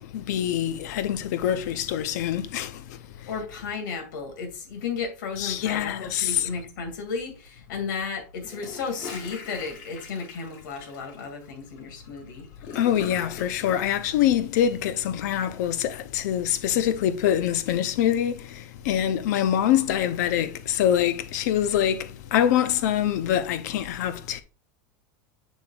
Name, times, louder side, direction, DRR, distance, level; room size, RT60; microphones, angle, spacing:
voice 1, 0.0-2.8 5.4-6.5 12.7-24.4, left 10 dB, 60° left, 0.7 m, -25 dB
voice 2, 3.3-12.5, left 5 dB, 80° left, 2.3 m, -34 dB
Gurgling / Toilet flush, 8.4-13.8, left 5 dB, 40° left, 2.2 m, -42 dB
7.1 x 6.3 x 2.4 m
supercardioid pair, 160°, 10 cm